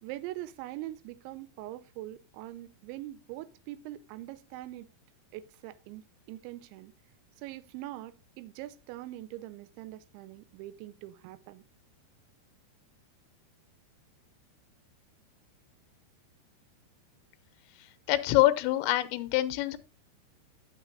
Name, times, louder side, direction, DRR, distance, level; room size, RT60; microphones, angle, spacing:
voice 1, 0.0-4.9 5.3-6.9 7.4-11.6, right 15 dB, 85° right, 3.0 m, -43 dB
voice 2, 18.1-19.8, left 16 dB, 85° left, 3.0 m, -25 dB
9.6 x 8.9 x 2.5 m
omnidirectional pair, 5.4 m